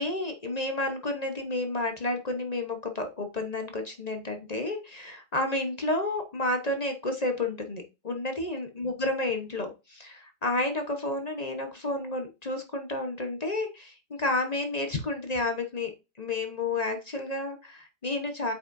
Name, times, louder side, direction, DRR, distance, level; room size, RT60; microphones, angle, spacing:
voice 1, 0.0-15.9 16.2-18.5, left 2 dB, 35° left, 5 dB, 0.6 m, -31 dB
8.3 x 5.5 x 2.6 m, 0.27 s
omnidirectional pair, 2.1 m